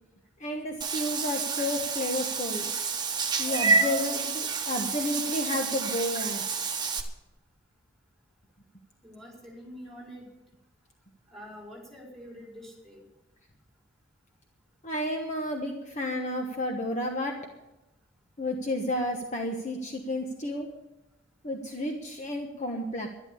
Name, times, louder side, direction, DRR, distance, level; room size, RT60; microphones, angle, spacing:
voice 1, 0.4-2.7 3.4-6.5 14.8-17.4 18.4-20.7 21.4-23.1, left 1 dB, 35° left, 2 dB, 1.2 m, -31 dB
Meow / Water / Bathtub (filling or washing), 0.8-7.0, right 4 dB, 20° right, 1.3 m, -29 dB
voice 2, 9.0-10.3 11.3-13.0, equal, ahead, -3 dB, 4.8 m, -46 dB
12.0 x 11.5 x 7.0 m, 0.97 s
head